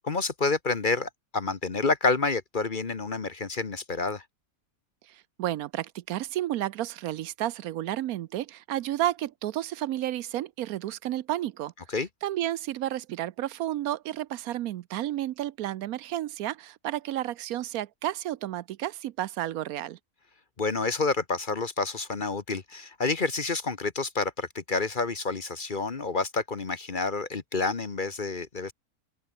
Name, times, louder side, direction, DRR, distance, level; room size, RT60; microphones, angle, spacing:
voice 1, 0.0-4.2 11.9-12.1 20.6-28.7, left 3 dB, 35° left, 1.3 m, -29 dB
voice 2, 5.1-11.7 12.2-20.0, right 13 dB, 75° right, 1.1 m, -31 dB
omnidirectional pair, 1.6 m